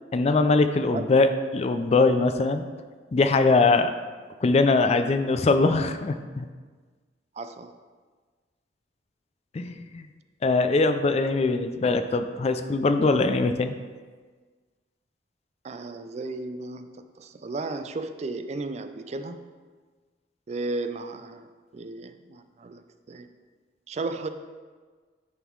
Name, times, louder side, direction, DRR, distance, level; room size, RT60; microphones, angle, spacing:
voice 1, 0.1-2.6 3.1-3.9 4.4-6.5 9.5-10.1 10.4-13.7, left 3 dB, 35° left, 9 dB, 0.4 m, -22 dB
voice 2, 7.3-7.7 15.6-19.4 20.5-21.5 21.7-23.3 23.9-24.3, right 3 dB, 40° right, 9 dB, 0.4 m, -34 dB
9.9 x 3.7 x 4.6 m, 1.5 s
head